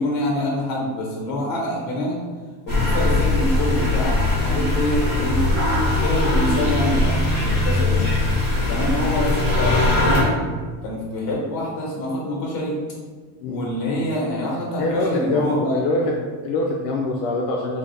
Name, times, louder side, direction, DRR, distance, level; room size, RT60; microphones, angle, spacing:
voice 1, 0.0-2.2 2.6-5.4 5.9-8.0 8.6-10.4 10.8-12.8 13.5-15.8, left 1 dB, 45° left, -3 dB, 1.2 m, -26 dB
sound 1, 2.7-10.2, left 2 dB, 20° right, 0.9 m, -20 dB
voice 2, 14.8-17.8, left 2 dB, 80° left, -1 dB, 0.6 m, -24 dB
3.8 x 2.1 x 2.7 m, 1.5 s
cardioid pair, 150°, 48 cm